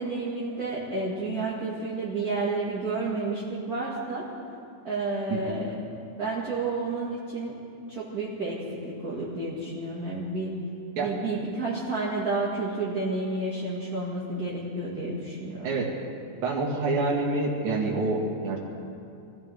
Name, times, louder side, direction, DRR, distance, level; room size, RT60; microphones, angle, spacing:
voice 1, 0.0-4.3 4.8-5.7 6.2-7.5 7.9-10.5 11.0-15.7, right 3 dB, 35° right, -6 dB, 2.0 m, -30 dB
voice 2, 16.4-18.6, right 3 dB, 70° right, -1 dB, 3.3 m, -27 dB
24.5 x 15.5 x 3.5 m, 2.5 s
omnidirectional pair, 3.6 m